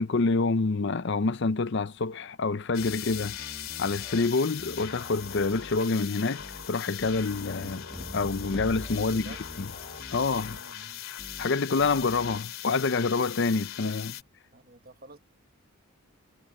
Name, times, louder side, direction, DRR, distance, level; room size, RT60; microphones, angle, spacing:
voice 1, 0.0-3.3 3.8-7.9 8.1-9.3 10.1-10.6 11.4-14.2, left 4 dB, 55° left, 0.6 m, -27 dB
sound 1, 2.7-14.2, left 11 dB, 75° left, 2.6 m, -40 dB
sound 2, 2.8-4.3 4.6-5.8 6.4-6.7 7.0-9.1 9.4-10.6 11.2-11.5 11.8-12.4, left 1 dB, 30° left, 0.9 m, -47 dB
sound 3, 7.6-10.2, equal, ahead, 1.8 m, -42 dB
voice 2, 9.0-9.5 10.5-11.1 14.5-15.2, right 2 dB, 45° right, 1.4 m, -50 dB
head